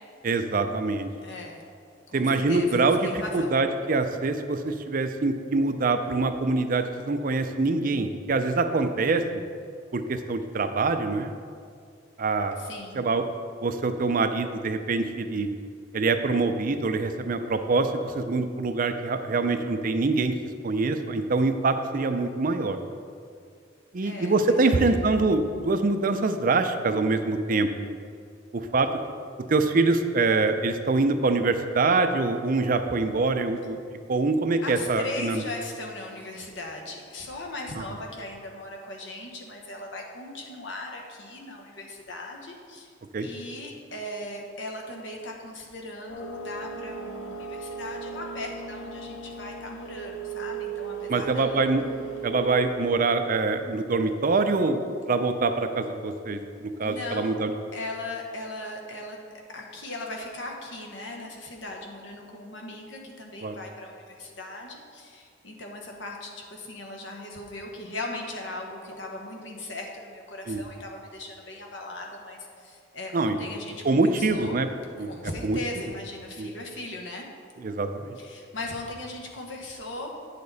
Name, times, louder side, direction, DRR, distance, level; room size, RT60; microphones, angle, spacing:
voice 1, 0.2-1.1 2.1-9.2 9.9-11.3 12.2-12.7 13.0-13.2 13.6-15.5 15.9-20.3 20.6-22.8 23.9-28.0 28.5-28.9 29.5-33.8 34.1-35.4 37.8-37.9 43.1-43.3 51.1-51.8 52.2-54.8 55.1-57.5 63.4-63.6 70.5-70.6 73.1-73.4 73.8-74.7 75.0-75.1 75.4-75.6 76.4-76.5 77.6-78.2, right 3 dB, 45° right, 8 dB, 0.5 m, -25 dB
voice 2, 1.2-1.6 2.1-3.6 12.6-13.0 24.0-25.1 34.6-42.9 43.2-51.7 56.8-57.3 57.7-59.2 59.5-74.6 75.1-77.2 78.2-80.1, left 2 dB, 70° left, 1 dB, 1.3 m, -38 dB
sound 1, 46.1-52.6, right 5 dB, 85° left, 1.0 m, -37 dB
9.8 x 6.7 x 4.1 m, 2.2 s
head